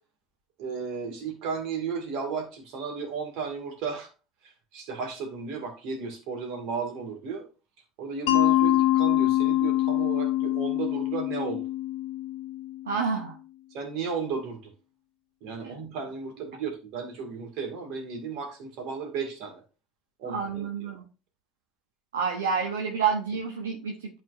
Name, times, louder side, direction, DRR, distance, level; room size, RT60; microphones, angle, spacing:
voice 1, 0.6-4.1 4.4-7.5 8.0-11.6 13.7-14.7 15.4-19.6 20.2-20.9, right 5 dB, 65° right, 3 dB, 2.2 m, -34 dB
Mallet percussion, 8.3-13.0, left 15 dB, 70° left, 0.9 m, -25 dB
voice 2, 12.9-13.3 15.6-15.7 20.2-21.0 22.1-24.2, right 6 dB, 85° right, 0 dB, 0.9 m, -29 dB
11.0 x 4.4 x 2.6 m, 0.34 s
hypercardioid pair, 70°, 0 cm